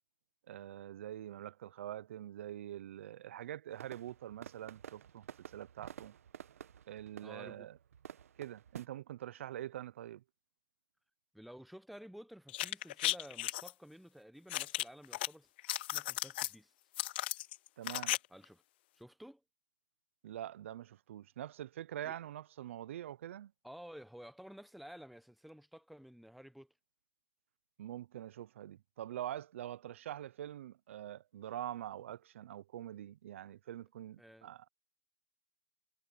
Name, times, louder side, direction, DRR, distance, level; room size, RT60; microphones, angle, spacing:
voice 1, 0.5-5.3 5.5-6.1 6.9-7.8 8.4-10.2 17.8-18.2 20.2-23.5 27.8-34.7, right 12 dB, 65° right, 0.6 m, -45 dB
sound 1, 3.7-8.9, right 9 dB, 80° right, 1.4 m, -52 dB
voice 2, 7.2-7.7 11.3-15.5 15.9-16.7 18.3-18.6 18.9-19.4 22.0-22.2 23.6-26.7 34.2-34.5, equal, ahead, 0.8 m, -53 dB
sound 2, 12.5-13.7 14.5-15.3 15.6-16.5 17.0-18.2 18.4-18.5, left 17 dB, 45° left, 0.5 m, -35 dB
hypercardioid pair, 155°, 8 cm